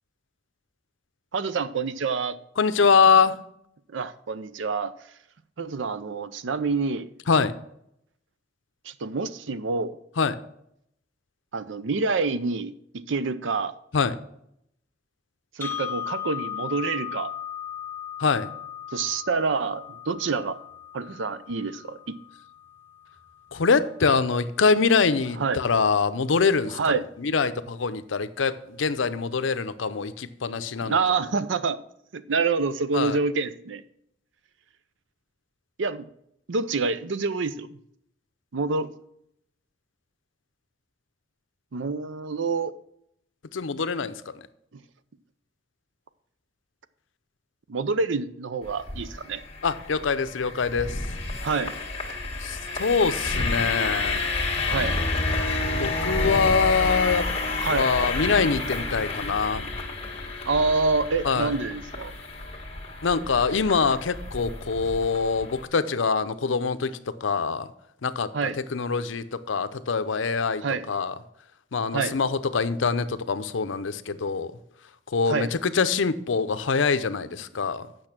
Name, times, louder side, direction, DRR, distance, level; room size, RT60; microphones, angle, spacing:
voice 1, 1.3-2.4 3.9-4.9 5.6-7.1 8.9-10.0 11.5-13.7 15.6-17.3 18.9-20.6 20.9-22.2 25.4-25.6 26.7-27.0 30.8-31.8 32.1-33.8 35.8-36.1 36.5-37.8 38.5-38.9 41.7-42.7 47.7-49.4 51.4-51.7 54.6-55.0 57.6-57.9 60.5-62.1 68.3-68.6 70.6-70.8 71.9-72.1 75.3-75.5, right 4 dB, 80° right, 14 dB, 0.6 m, -27 dB
voice 2, 2.6-3.4 7.3-7.5 10.2-10.3 13.9-14.1 18.2-18.5 23.5-26.8 27.2-31.2 32.9-33.2 43.5-44.2 49.6-51.0 52.4-54.3 55.8-57.3 57.7-59.7 61.2-61.5 63.0-66.9 67.2-67.7 68.0-68.3 68.6-71.1 71.7-74.5 75.1-77.9, left 5 dB, 85° left, 13 dB, 0.6 m, -24 dB
sound 1, 15.6-23.6, left 9 dB, 10° left, 0.4 m, -37 dB
sound 2, 48.6-65.6, left 3 dB, 30° left, 1.6 m, -30 dB
8.6 x 6.4 x 5.9 m, 0.74 s
head